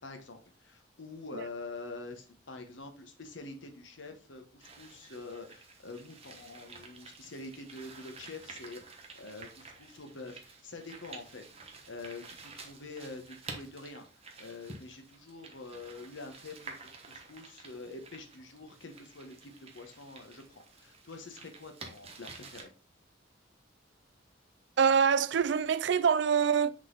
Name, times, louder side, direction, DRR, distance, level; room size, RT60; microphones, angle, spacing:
voice 1, 0.0-14.1 14.4-16.7 17.1-22.7, left 3 dB, 80° left, 1.2 m, -46 dB
sound 1, 4.6-22.6, right 4 dB, 35° right, 1.1 m, -50 dB
voice 2, 24.8-26.7, right 6 dB, 65° right, 0.4 m, -25 dB
6.3 x 3.9 x 3.9 m
head